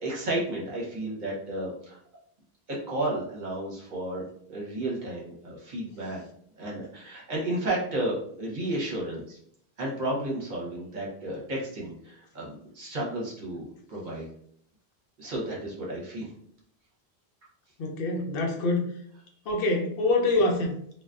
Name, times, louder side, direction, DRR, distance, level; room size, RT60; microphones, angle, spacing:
voice 1, 0.0-2.0 2.7-6.2 6.6-9.4 9.8-14.3 15.2-16.3, right 1 dB, 50° right, -4 dB, 0.8 m, -32 dB
voice 2, 17.8-18.9 19.5-20.7, left 2 dB, 65° left, 2 dB, 0.7 m, -25 dB
2.5 x 2.2 x 2.3 m, 0.65 s
omnidirectional pair, 1.1 m